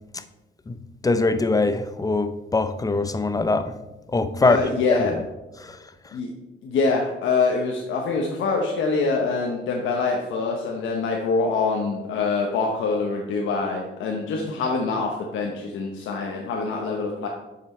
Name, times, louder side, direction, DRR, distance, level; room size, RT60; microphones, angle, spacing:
voice 1, 0.7-3.7 4.1-4.6 4.9-5.2 5.6-5.8, left 3 dB, 20° left, 0.5 m, -23 dB
voice 2, 4.4-5.1 6.1-6.3 6.6-17.3, left 4 dB, 75° left, 1.0 m, -25 dB
7.8 x 5.9 x 4.3 m
cardioid pair, 90°, 20 cm